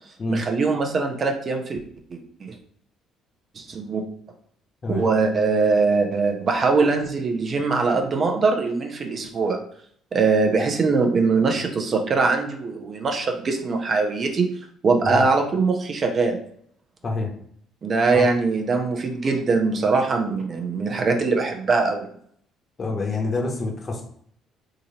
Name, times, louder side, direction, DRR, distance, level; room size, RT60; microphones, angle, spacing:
voice 1, 0.3-1.8 2.1-2.5 3.5-4.0 4.9-9.6 10.1-14.5 14.8-16.4 17.8-22.1, right 4 dB, 45° right, 3 dB, 0.8 m, -22 dB
voice 2, 22.8-24.0, left 3 dB, 40° left, 1 dB, 1.1 m, -27 dB
3.9 x 2.8 x 2.9 m, 0.63 s
hypercardioid pair, 50°, 0 cm